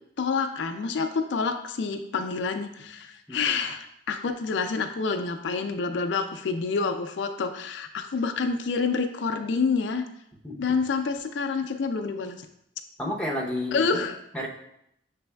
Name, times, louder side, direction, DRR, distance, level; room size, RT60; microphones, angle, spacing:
voice 1, 0.2-10.0 10.6-12.4 13.7-14.2, left 4 dB, 85° left, 6 dB, 0.4 m, -28 dB
voice 2, 13.0-14.0 14.3-14.5, left 1 dB, 5° left, -2 dB, 0.7 m, -31 dB
6.8 x 3.3 x 2.2 m, 0.76 s
head